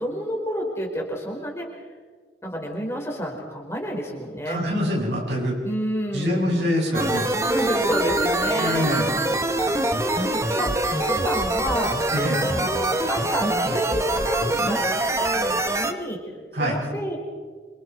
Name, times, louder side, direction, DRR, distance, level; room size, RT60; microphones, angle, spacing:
voice 1, 0.0-1.7 2.4-4.6 5.6-6.7 7.4-8.9 9.6-10.8 11.1-11.9 12.4-16.2 16.6-17.2, equal, 15° left, 0 dB, 4.9 m, -29 dB
voice 2, 4.5-5.5 6.1-7.3 8.6-9.1 12.1-12.4 16.5-16.8, equal, 75° right, -2 dB, 7.5 m, -24 dB
sound 1, 6.9-15.9, right 1 dB, 15° right, 1.3 m, -24 dB
27.5 x 27.0 x 4.8 m, 1.5 s
head